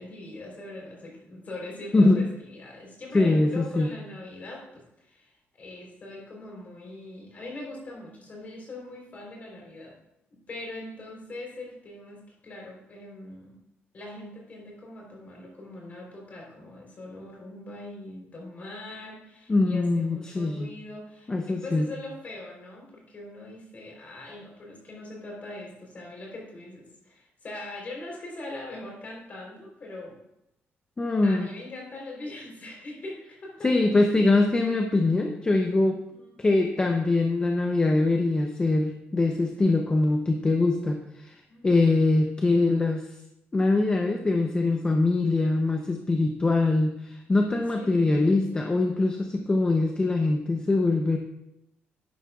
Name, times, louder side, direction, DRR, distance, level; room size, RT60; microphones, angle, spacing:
voice 1, 0.0-9.9 10.5-13.6 13.9-30.2 31.2-33.7 36.1-36.4 41.5-41.9 47.8-48.5, left 2 dB, 40° left, -2 dB, 3.6 m, -41 dB
voice 2, 1.9-2.2 3.1-3.9 19.5-20.7 21.3-21.9 31.0-31.5 33.6-36.0 36.4-43.1 43.5-51.2, left 2 dB, 20° left, 3 dB, 0.6 m, -23 dB
11.0 x 9.5 x 2.4 m, 0.83 s
cardioid pair, 145°, 4 cm